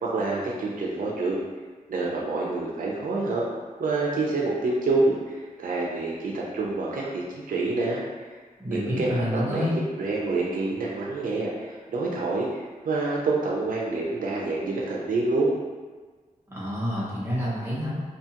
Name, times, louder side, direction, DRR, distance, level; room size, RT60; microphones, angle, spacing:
voice 1, 0.0-1.4 1.9-3.4 3.8-8.0 8.7-15.5, right 3 dB, 75° right, -4 dB, 0.5 m, -27 dB
voice 2, 8.6-9.8 16.5-18.0, equal, 15° right, -7 dB, 0.7 m, -28 dB
2.7 x 2.3 x 2.8 m, 1.4 s
wide cardioid pair, 155°, 14 cm